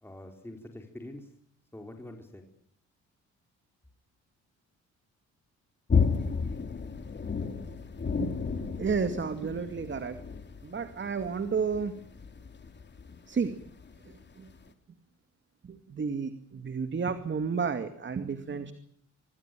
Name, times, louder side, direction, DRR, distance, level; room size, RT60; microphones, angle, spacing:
voice 1, 0.0-1.3 1.7-2.4, left 1 dB, 10° left, 3 dB, 4.1 m, -45 dB
sound 1, 5.9-14.2 14.5-14.7, left 5 dB, 35° left, 3.5 m, -32 dB
voice 2, 8.6-10.2 10.6-11.9 13.3-13.5 14.4-14.5 15.7-18.7, right 5 dB, 40° right, 9 dB, 2.4 m, -31 dB
26.0 x 20.0 x 9.3 m, 0.66 s
cardioid pair, 90°, 30 cm